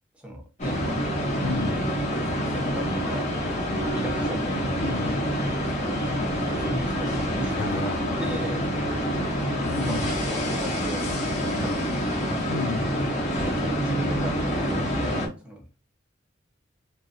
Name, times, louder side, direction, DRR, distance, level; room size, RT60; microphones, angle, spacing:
voice 1, 0.1-0.8 1.3-1.5 2.2-3.3 3.9-5.3 6.6-7.9 8.2-8.7 9.8-11.2 11.6-12.4 13.4-15.2 15.4-15.6, equal, 5° right, 0.7 m, -37 dB
sound 1, 0.6-15.3, equal, 35° left, 0.7 m, -27 dB
voice 2, 1.4-1.9 4.8-5.2 7.6-8.2 9.6-10.0 12.5-12.9, left 5 dB, 75° left, 0.3 m, -32 dB
2.9 x 2.6 x 2.5 m
head